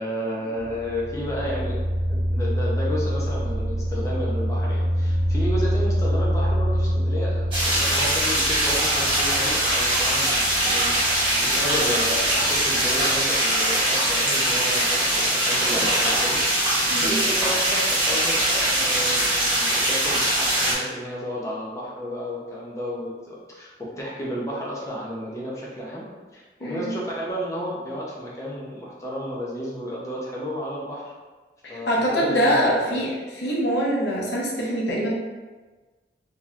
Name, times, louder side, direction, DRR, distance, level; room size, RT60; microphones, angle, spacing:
voice 1, 0.0-1.8 2.1-26.1 26.3-31.1 31.7-33.0, equal, 15° left, -5 dB, 0.6 m, -32 dB
sound 1, 0.6-13.4, equal, 60° right, 1.0 m, -26 dB
sound 2, 7.5-20.7, right 1 dB, 30° right, 1.0 m, -22 dB
voice 2, 26.6-26.9 31.6-33.1 33.4-35.1, equal, 75° left, -3 dB, 0.8 m, -24 dB
3.8 x 2.8 x 2.4 m, 1.3 s
head